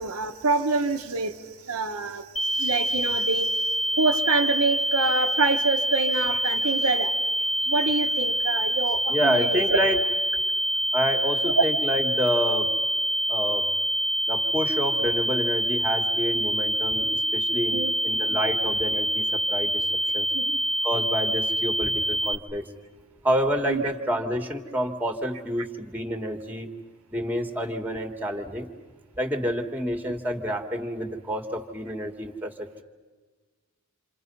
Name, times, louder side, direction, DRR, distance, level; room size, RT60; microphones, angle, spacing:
voice 1, 0.0-2.3 2.5-3.6 4.0-7.1 7.7-9.8 17.7-17.9 20.3-20.6 23.7-23.8, right 3 dB, 80° right, 1.2 m, -26 dB
sound 1, 2.4-22.4, right 1 dB, 30° left, 1.2 m, -26 dB
voice 2, 9.1-10.0 10.9-12.7 13.3-13.7 14.3-19.9 20.1-20.3 20.8-22.6 23.2-26.7 27.1-28.7 29.2-32.8, equal, 10° right, 1.8 m, -28 dB
27.5 x 27.5 x 5.5 m
head